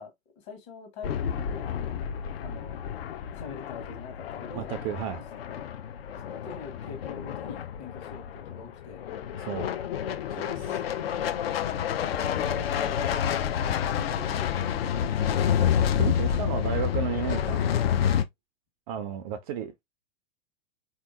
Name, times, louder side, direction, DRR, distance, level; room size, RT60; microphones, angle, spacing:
voice 1, 0.0-2.1 2.3-2.8 3.3-4.7 5.1-5.2 6.2-9.1 12.1-15.4, left 5 dB, 40° left, 1.4 m, -44 dB
sound 1, 1.0-18.2, left 8 dB, 60° left, 0.6 m, -29 dB
voice 2, 4.6-5.2 9.4-9.7 10.3-10.8 16.0-17.9 18.9-19.8, right 9 dB, 30° right, 0.4 m, -33 dB
3.6 x 2.8 x 2.5 m
figure-of-eight pair, 95°, 34 cm